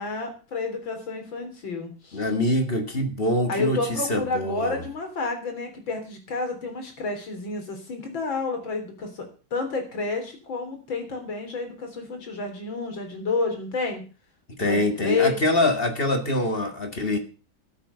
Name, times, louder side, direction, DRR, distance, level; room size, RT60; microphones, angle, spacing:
voice 1, 0.0-2.2 3.5-14.0 14.6-15.4, left 4 dB, 70° left, 5 dB, 4.2 m, -30 dB
voice 2, 2.1-4.8 14.5-17.2, left 1 dB, 30° left, 6 dB, 1.9 m, -24 dB
13.0 x 9.0 x 6.6 m, 0.36 s
omnidirectional pair, 2.2 m